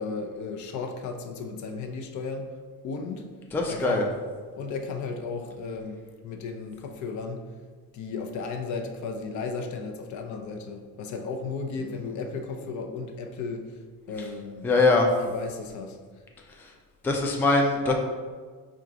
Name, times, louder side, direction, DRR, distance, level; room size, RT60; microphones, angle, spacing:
voice 1, 0.0-2.5 2.8-3.3 3.7-4.1 4.5-7.5 7.9-13.8 14.1-14.7 15.2-16.0, left 4 dB, 55° left, 4 dB, 0.6 m, -34 dB
voice 2, 3.5-4.0 14.6-15.1 17.0-17.9, left 3 dB, 5° left, 1 dB, 0.3 m, -22 dB
4.4 x 2.4 x 3.7 m, 1.5 s
cardioid pair, 115°, 34 cm